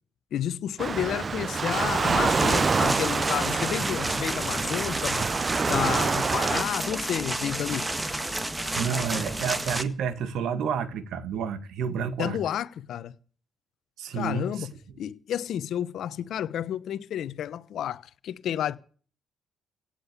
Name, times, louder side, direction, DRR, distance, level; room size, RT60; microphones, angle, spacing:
voice 1, 0.3-5.3 5.7-7.9 12.2-13.1 14.1-14.7 15.0-18.8, left 10 dB, 70° left, 1.1 m, -31 dB
Waves surf, 0.8-6.6, right 5 dB, 35° right, 0.7 m, -27 dB
sound 1, 2.2-9.8, right 1 dB, 15° right, 1.8 m, -31 dB
voice 2, 8.8-12.4 14.0-14.7, right 6 dB, 80° right, 1.9 m, -30 dB
17.5 x 7.8 x 8.3 m
cardioid pair, 90°, 0 cm